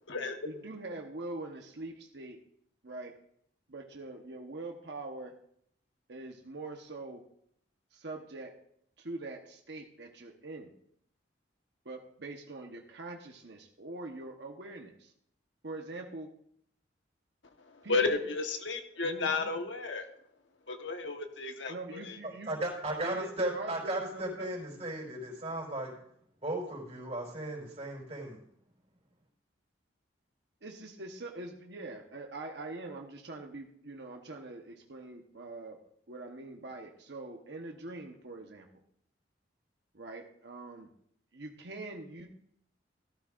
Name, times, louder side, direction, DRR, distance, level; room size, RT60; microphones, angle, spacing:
voice 1, 0.4-2.4 2.8-3.2 3.7-5.3 6.1-7.2 7.9-8.5 9.0-10.7 11.8-15.1 15.6-16.3 17.8-18.2 19.0-19.6 21.7-22.5 23.0-24.5 30.6-35.8 36.1-38.7 39.9-40.9 41.3-42.3, right 2 dB, 65° right, 2 dB, 1.1 m, -43 dB
voice 2, 17.7-20.1 20.7-22.2, left 3 dB, 85° left, 5 dB, 1.2 m, -33 dB
voice 3, 22.5-25.9 26.4-28.4, right 1 dB, 35° right, 0 dB, 4.5 m, -35 dB
14.0 x 13.5 x 2.5 m, 0.68 s
head